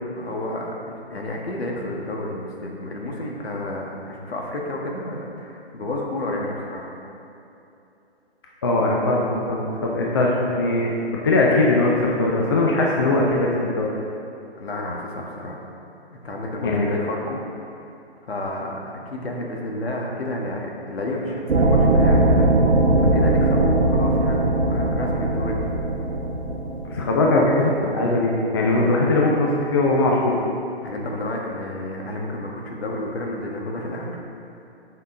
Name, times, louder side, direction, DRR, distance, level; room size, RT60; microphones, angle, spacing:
voice 1, 0.1-6.9 14.5-15.6 16.1-17.7 18.3-22.5 23.0-25.8 30.8-34.2, left 1 dB, 70° left, -1 dB, 1.4 m, -31 dB
voice 2, 8.6-10.9 11.2-13.9 16.6-16.9 26.9-30.4, left 2 dB, 25° left, -3 dB, 0.5 m, -20 dB
sound 1, 21.5-27.1, right 2 dB, 80° right, 0.8 m, -19 dB
7.9 x 5.5 x 3.7 m, 2.8 s
figure-of-eight pair, 150°, 33 cm